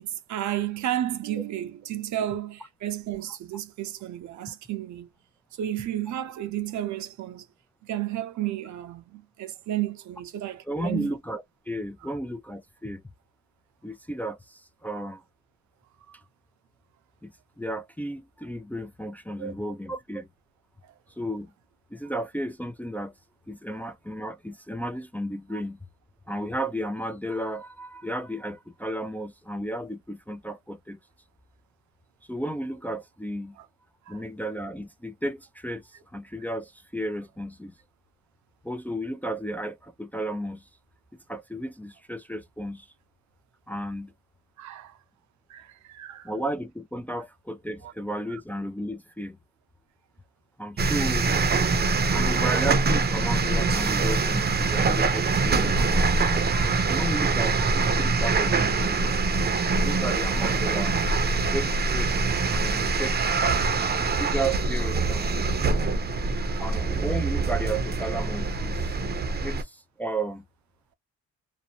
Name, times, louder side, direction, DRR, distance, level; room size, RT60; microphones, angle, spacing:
voice 1, 0.0-5.1 5.6-7.5 7.8-11.1 14.9-15.0 16.1-16.2 19.4-19.7 33.6-33.7 34.1-34.2 44.6-45.0 45.5-46.3 47.1-47.2 47.8-47.9 56.5-56.9 66.4-66.9, right 12 dB, 70° right, 0.6 m, -33 dB
voice 2, 10.7-13.0 13.8-15.2 17.2-20.3 21.2-21.5 21.9-23.1 23.5-25.8 26.3-31.0 32.3-33.6 34.1-37.7 38.6-40.7 41.3-42.9 43.7-44.1 46.2-49.4 50.6-51.3 52.1-56.2 56.9-59.0 59.8-61.0 61.3-63.4 64.0-65.5 66.6-69.0 69.4-70.5, right 1 dB, 5° left, 0.3 m, -33 dB
sound 1, 50.8-69.6, right 4 dB, 35° right, 0.6 m, -24 dB
2.5 x 2.0 x 2.7 m
cardioid pair, 90°, 30 cm